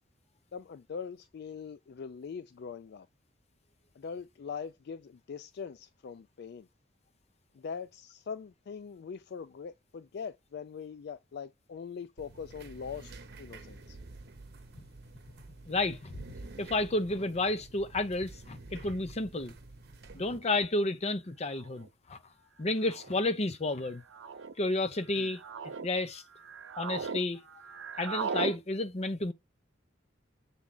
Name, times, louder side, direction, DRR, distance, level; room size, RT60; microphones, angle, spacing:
voice 1, 0.5-3.1 4.0-6.7 7.5-14.0 25.2-25.3, left 6 dB, 60° left, 0.4 m, -42 dB
sound 1, 12.2-20.4, right 2 dB, 55° right, 0.9 m, -49 dB
voice 2, 15.7-16.2 16.6-19.6 20.1-22.2 22.6-24.0 24.6-26.2 26.8-27.4 28.0-29.3, left 2 dB, 35° left, 0.7 m, -31 dB
sound 2, 20.5-20.6 21.6-21.9 22.8-23.2 24.1-24.5 25.1-25.9 26.3-27.2 27.5-28.6, right 5 dB, 85° right, 0.6 m, -38 dB
7.2 x 3.6 x 3.8 m
head